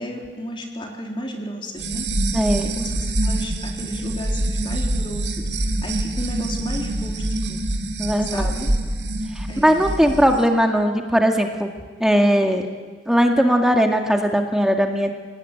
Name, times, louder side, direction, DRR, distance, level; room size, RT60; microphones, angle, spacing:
voice 1, 0.0-2.1 2.6-7.2 7.5-7.7 8.2-8.7 9.5-9.8, equal, 30° left, 1 dB, 3.8 m, -33 dB
sound 1, 1.8-10.4, right 1 dB, 80° right, 2.9 m, -25 dB
voice 2, 2.3-2.7 8.0-8.5 9.4-11.7 12.0-12.7 13.1-15.1, equal, 5° right, 3 dB, 2.0 m, -19 dB
28.0 x 19.0 x 9.9 m, 1.5 s
head